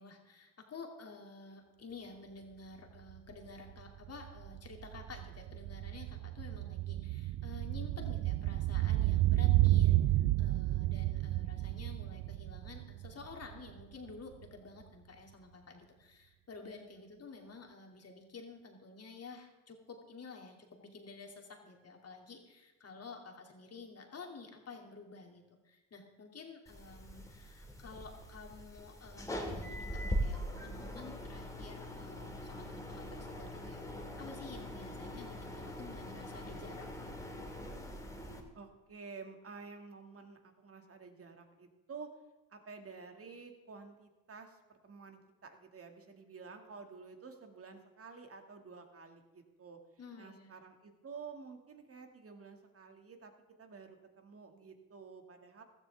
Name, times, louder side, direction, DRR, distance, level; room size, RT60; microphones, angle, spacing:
voice 1, 0.0-36.9 50.0-50.5, left 4 dB, 35° left, 2 dB, 2.6 m, -51 dB
sound 1, 3.1-3.2 3.5-13.8 14.1-14.2, right 15 dB, 55° right, 0.5 m, -31 dB
sound 2, 26.7-38.4, equal, 10° left, 2.2 m, -42 dB
voice 2, 38.5-42.1 42.5-49.8 50.2-53.3 53.6-55.6, right 5 dB, 35° right, 5 dB, 2.1 m, -51 dB
15.5 x 13.5 x 3.5 m, 1.1 s
hypercardioid pair, 70°, 41 cm